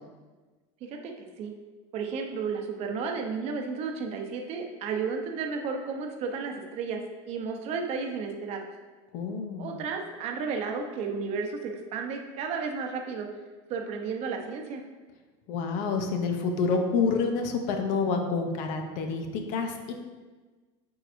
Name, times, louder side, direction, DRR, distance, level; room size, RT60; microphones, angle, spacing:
voice 1, 0.8-1.5 1.9-7.0 7.3-8.6 9.6-13.3 13.7-14.8, right 5 dB, 45° right, 3 dB, 0.9 m, -33 dB
voice 2, 9.1-9.8 15.5-19.9, left 4 dB, 55° left, 4 dB, 0.8 m, -28 dB
8.6 x 4.8 x 2.7 m, 1.3 s
cardioid pair, 145°, 15 cm